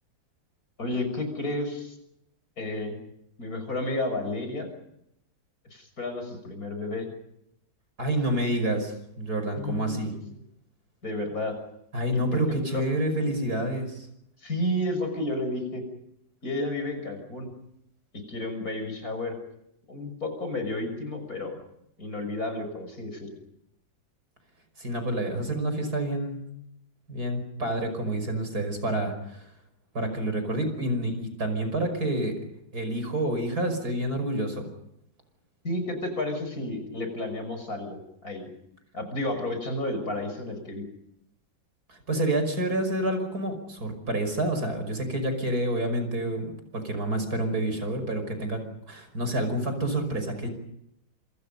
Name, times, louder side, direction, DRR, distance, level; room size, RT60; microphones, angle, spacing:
voice 1, 0.8-2.0 2.6-3.0 3.4-4.7 5.7-7.1 9.6-10.0 11.0-11.6 12.3-12.4 12.7-12.8 14.4-15.8 16.4-17.5 18.1-19.4 19.9-21.6 22.0-23.3 35.6-38.5 38.9-40.9, left 1 dB, 50° left, 6 dB, 6.7 m, -31 dB
voice 2, 8.0-10.1 11.9-14.1 24.8-26.4 27.1-29.5 29.9-32.4 32.7-34.7 41.9-50.5, right 1 dB, 55° right, 8 dB, 6.1 m, -28 dB
27.5 x 27.0 x 5.5 m, 0.78 s
omnidirectional pair, 2.0 m